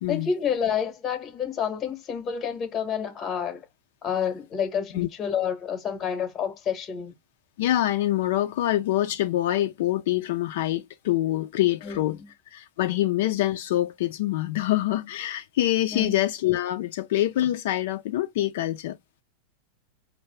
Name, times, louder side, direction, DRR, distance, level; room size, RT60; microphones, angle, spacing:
voice 1, 0.1-3.6 4.0-7.1 11.8-12.3 15.9-16.2, left 7 dB, 15° left, 0.9 m, -29 dB
voice 2, 7.6-12.2 12.5-19.0, left 14 dB, 55° left, 0.4 m, -25 dB
5.4 x 2.4 x 3.2 m
supercardioid pair, 180°, 0 cm